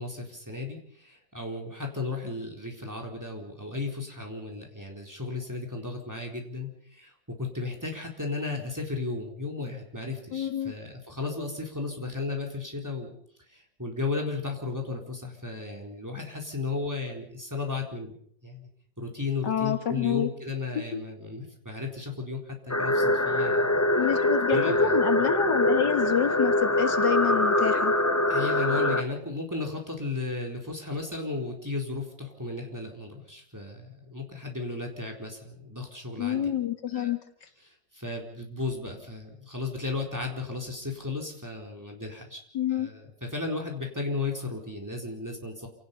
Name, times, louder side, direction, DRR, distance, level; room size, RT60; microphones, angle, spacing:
voice 1, 0.0-7.1 7.4-13.1 13.5-18.2 18.4-18.7 19.0-23.8 24.5-25.0 28.3-36.4 36.9-37.1 37.7-42.4 42.7-45.7, left 3 dB, 10° right, 1 dB, 4.1 m, -34 dB
voice 2, 10.3-10.7 19.4-20.3 20.7-21.0 24.0-27.9 36.2-37.2 42.5-42.9, left 8 dB, 75° left, 8 dB, 2.2 m, -28 dB
sound 1, 22.7-29.0, left 1 dB, 25° left, 0.3 m, -24 dB
28.0 x 18.0 x 5.5 m, 0.62 s
omnidirectional pair, 1.9 m